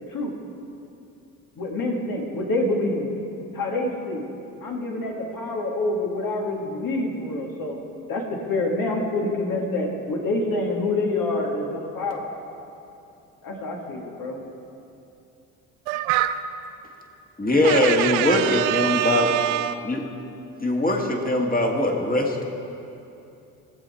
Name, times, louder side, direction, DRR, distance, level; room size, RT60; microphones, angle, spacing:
voice 1, 1.6-3.1 3.5-4.3 4.6-7.8 8.1-12.2 13.4-14.4, left 2 dB, 55° left, -1 dB, 2.6 m, -26 dB
voice 2, 15.9-16.4 17.6-19.8, right 14 dB, 80° right, 11 dB, 0.6 m, -24 dB
voice 3, 17.4-19.3 19.8-20.0 20.6-22.4, left 1 dB, 20° left, 1 dB, 2.3 m, -21 dB
19.5 x 7.7 x 4.5 m, 2.8 s
hypercardioid pair, 55°, 41 cm